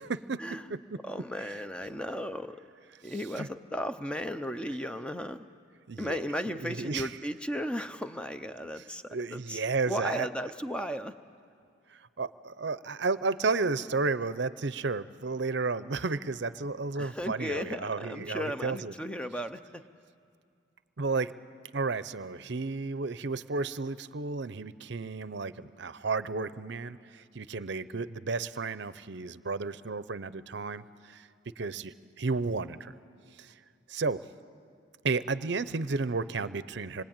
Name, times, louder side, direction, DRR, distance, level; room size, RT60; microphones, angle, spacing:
voice 1, 0.1-0.4 0.7-1.0 3.0-3.5 5.9-6.2 6.6-7.1 9.1-10.3 11.9-18.9 21.0-21.3 21.7-31.3 31.6-33.0 33.4-33.5 33.9-34.2 35.0-37.0, right 4 dB, 60° right, 15 dB, 0.6 m, -32 dB
voice 2, 1.0-2.6 3.0-5.5 6.0-11.1 17.0-19.8, equal, 5° left, 9 dB, 0.6 m, -35 dB
26.0 x 22.5 x 8.9 m, 2.3 s
head